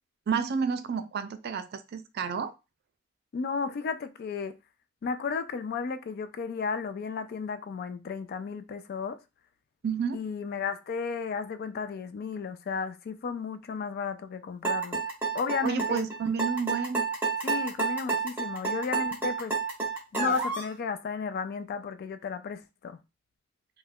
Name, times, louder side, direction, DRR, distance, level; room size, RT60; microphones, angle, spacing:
voice 1, 0.3-2.5 9.8-10.2 15.6-17.1, right 6 dB, 50° right, 0.4 m, -30 dB
voice 2, 3.3-4.5 5.0-9.2 10.1-15.0 15.3-16.0 17.4-19.5 20.1-23.0, left 5 dB, 50° left, 0.3 m, -33 dB
sound 1, 14.6-20.7, right 4 dB, 10° right, 0.7 m, -30 dB
2.3 x 2.2 x 3.4 m
head